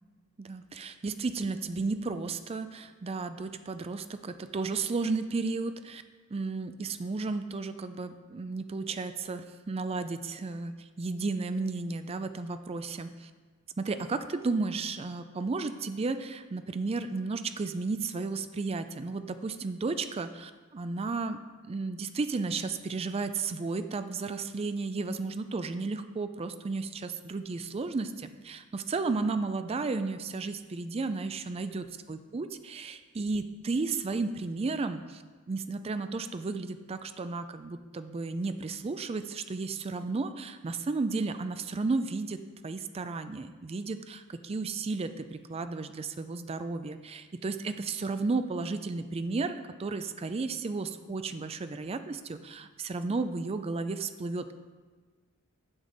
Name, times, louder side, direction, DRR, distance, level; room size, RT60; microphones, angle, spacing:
voice 1, 0.4-6.0 6.3-13.3 13.8-31.8 32.1-35.2 35.5-54.5, right 3 dB, 30° right, 10 dB, 0.4 m, -33 dB
9.6 x 6.7 x 4.0 m, 1.4 s
head